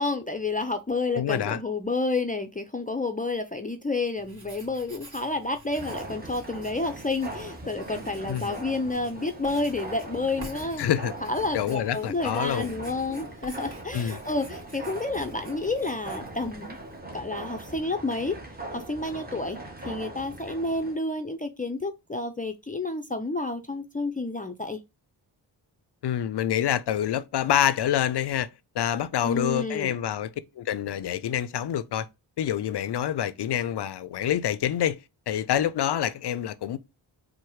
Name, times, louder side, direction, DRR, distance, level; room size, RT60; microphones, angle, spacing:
voice 1, 0.0-10.9 11.2-16.8 17.1-18.4 18.7-19.6 19.8-24.8 29.2-30.0, left 3 dB, 20° left, 0.6 m, -30 dB
voice 2, 1.2-1.6 8.3-8.5 10.8-11.1 11.5-12.7 13.9-14.2 26.0-28.5 28.7-32.1 32.4-35.0 35.3-36.8, left 10 dB, 60° left, 0.5 m, -27 dB
Writing, 4.2-17.0, right 1 dB, 40° right, 2.8 m, -50 dB
sound 1, 5.7-21.0, right 2 dB, 20° right, 1.2 m, -40 dB
4.5 x 2.2 x 4.7 m
cardioid pair, 50°, 46 cm